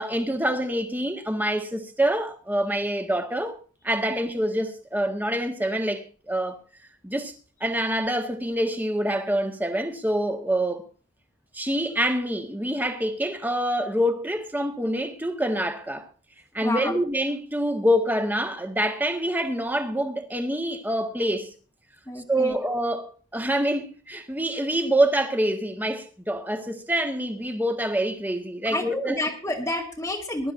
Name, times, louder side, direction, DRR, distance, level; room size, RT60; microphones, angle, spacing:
voice 1, 0.0-3.5 3.8-6.6 7.0-7.3 7.6-10.8 11.5-16.0 16.5-21.5 22.3-29.2, right 1 dB, 10° right, 1.6 m, -26 dB
voice 2, 16.6-17.0 22.1-22.6 28.6-30.5, left 1 dB, 10° left, 1.6 m, -29 dB
22.5 x 12.5 x 2.7 m
head